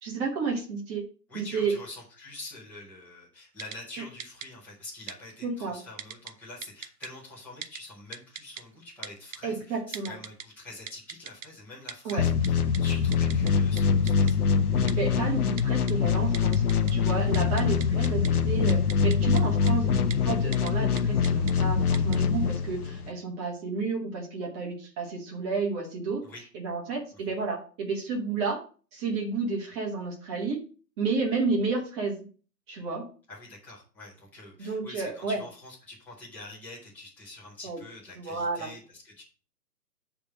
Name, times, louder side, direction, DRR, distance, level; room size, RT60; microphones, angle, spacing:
voice 1, 0.0-1.1 1.3-1.8 5.4-5.8 9.4-10.1 12.0-12.3 14.9-16.6 16.9-26.3 26.5-28.6 28.9-30.6 31.0-32.3 32.7-33.1 34.6-35.4 37.6-37.8 38.1-38.7, right 4 dB, 15° right, -1 dB, 1.4 m, -31 dB
voice 2, 1.3-14.4 26.2-26.4 27.1-27.2 33.3-39.2, left 2 dB, 5° left, -9 dB, 1.7 m, -46 dB
Typing, 3.6-3.8 4.2-4.5 5.1-5.2 6.0-6.3 6.6-7.1 7.6-7.8 8.1-8.6 9.0-9.4 9.9-10.4 10.9-11.5 11.9-12.1 12.4-12.5 12.7-12.8 13.1-13.5 13.8-13.9 14.1-14.3 14.9-15.0 15.6-15.9 16.3-16.9 17.2-18.3 18.7-19.4 19.7-19.8 20.1-20.2 20.5-20.7 21.0-21.5 21.9-22.2, right 7 dB, 50° right, 0.7 m, -39 dB
sound 1, 12.2-23.1, left 6 dB, 65° left, 0.9 m, -24 dB
8.2 x 3.5 x 6.2 m, 0.39 s
figure-of-eight pair, 145°, 49 cm